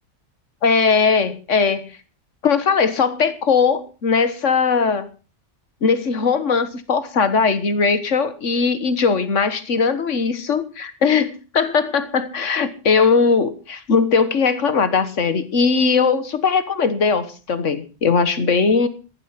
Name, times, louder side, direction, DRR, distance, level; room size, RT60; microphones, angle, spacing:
voice 1, 0.6-1.9 2.4-5.1 5.8-13.5 13.9-18.9, left 5 dB, 85° left, 12 dB, 1.8 m, -19 dB
15.0 x 11.5 x 5.8 m, 0.34 s
omnidirectional pair, 1.2 m